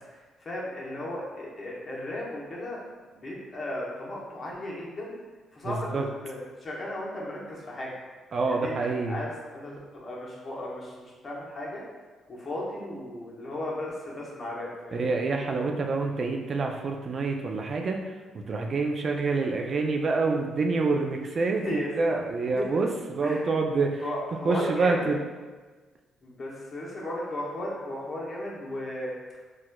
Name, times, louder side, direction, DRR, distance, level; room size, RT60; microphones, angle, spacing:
voice 1, 0.4-2.8 3.1-5.1 5.5-7.9 8.4-11.8 12.3-15.1 21.5-22.2 22.6-22.8 23.2-23.4 24.0-25.1 26.2-29.4, left 1 dB, 40° left, -4 dB, 0.9 m, -35 dB
voice 2, 5.6-6.0 8.3-9.2 14.9-18.1 18.5-24.0 24.5-25.2, right 3 dB, 50° right, 2 dB, 0.3 m, -27 dB
4.1 x 2.3 x 2.2 m, 1.3 s
cardioid pair, 90°, 0 cm